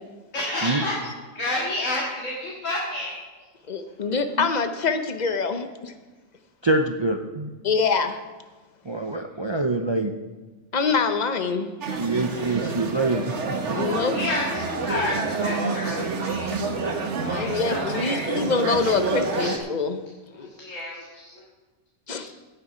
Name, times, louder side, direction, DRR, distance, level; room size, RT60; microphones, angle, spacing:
voice 1, 0.3-0.9 1.3-3.5 13.7-16.8 17.1-18.5 19.4-19.5 20.3-21.1 21.3-21.4 22.1-22.3, left 1 dB, 75° left, -4 dB, 2.4 m, -31 dB
voice 2, 3.7-5.9 7.6-8.2 10.7-11.7 13.7-14.2 17.3-20.0 20.4-20.5 22.1-22.3, left 4 dB, 40° left, 8 dB, 0.8 m, -25 dB
voice 3, 6.6-7.5 8.8-10.1 12.0-13.8, right 2 dB, 35° right, 5 dB, 0.4 m, -25 dB
sound 1, 11.8-19.6, right 3 dB, 65° right, 1.4 m, -28 dB
16.5 x 6.7 x 5.0 m, 1.2 s
omnidirectional pair, 1.3 m